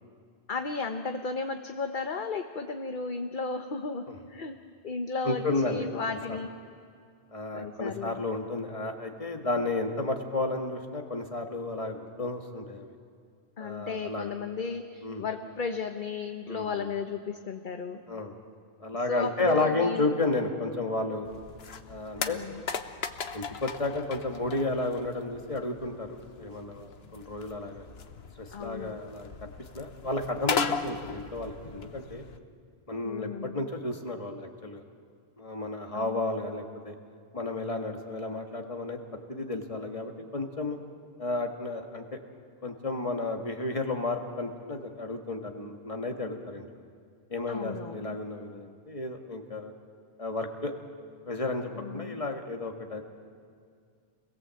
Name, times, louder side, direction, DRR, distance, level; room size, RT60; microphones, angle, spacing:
voice 1, 0.5-6.5 7.5-8.2 13.6-18.0 19.1-20.0 22.2-22.6 28.5-29.0 33.0-33.7 35.9-36.2 47.5-48.2 51.7-52.2, left 4 dB, 50° left, 5 dB, 1.1 m, -34 dB
voice 2, 5.2-6.4 7.3-12.9 13.6-14.3 15.0-15.2 16.5-16.9 18.1-18.3 18.8-21.3 21.9-22.4 23.3-27.9 28.4-29.5 29.7-32.2 32.9-34.8 35.4-36.9 37.3-40.8 41.2-42.2 42.6-46.7 47.3-49.7 50.2-50.7 51.3-53.0, left 2 dB, 30° left, 3 dB, 1.9 m, -32 dB
sound 1, 21.2-32.4, left 5 dB, 70° left, 1.3 m, -38 dB
28.0 x 20.5 x 7.8 m, 2.2 s
omnidirectional pair, 1.1 m